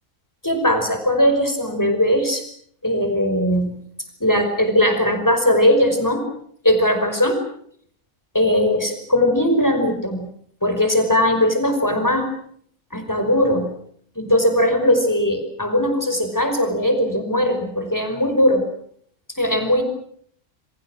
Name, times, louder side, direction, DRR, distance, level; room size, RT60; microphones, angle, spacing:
voice 1, 0.4-2.4 2.8-3.8 4.2-6.3 6.6-7.4 8.3-10.3 10.6-12.3 12.9-13.7 14.2-18.7 19.4-19.8, left 1 dB, 15° left, 6 dB, 5.4 m, -19 dB
28.5 x 24.5 x 6.4 m, 0.64 s
omnidirectional pair, 1.5 m